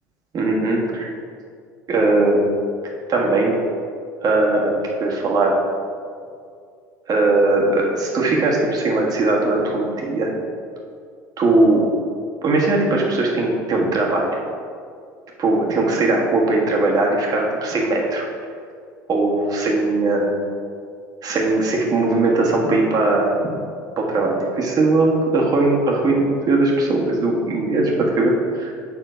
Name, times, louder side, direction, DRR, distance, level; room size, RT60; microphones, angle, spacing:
voice 1, 0.3-1.1 1.9-2.4 3.1-3.6 4.2-5.6 7.1-10.3 11.4-11.9 12.4-14.5 15.4-18.2 19.1-20.4 21.2-23.3 24.0-28.7, right 2 dB, 40° right, -1 dB, 1.4 m, -19 dB
7.0 x 3.7 x 5.0 m, 2.2 s
figure-of-eight pair, 65°, 10 cm